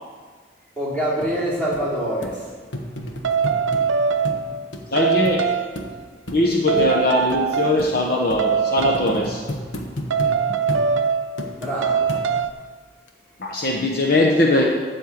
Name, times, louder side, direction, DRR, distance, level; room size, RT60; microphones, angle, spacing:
voice 1, 0.8-2.5 11.5-12.1, right 1 dB, 10° left, -7 dB, 2.9 m, -25 dB
sound 1, 1.2-1.3 1.7-1.8 2.2-2.4 2.7-3.9 4.3-4.4 4.7-4.8 5.3-5.4 5.8-5.9 6.3-6.4 6.8-6.9 7.3-7.4 7.8-7.9 8.3-8.4 8.8-10.4 10.7-10.9 11.4-11.8 12.1-12.5 13.1-13.2, left 1 dB, 75° left, 1.2 m, -31 dB
sound 2, 3.2-4.6 5.0-5.8 6.7-7.9 8.4-9.1 10.1-11.5 11.8-12.5, right 6 dB, 80° right, 0.6 m, -22 dB
voice 2, 4.9-5.5 6.3-9.5 13.4-14.7, left 1 dB, 50° left, -1 dB, 0.9 m, -20 dB
12.5 x 4.5 x 8.1 m, 1.5 s
head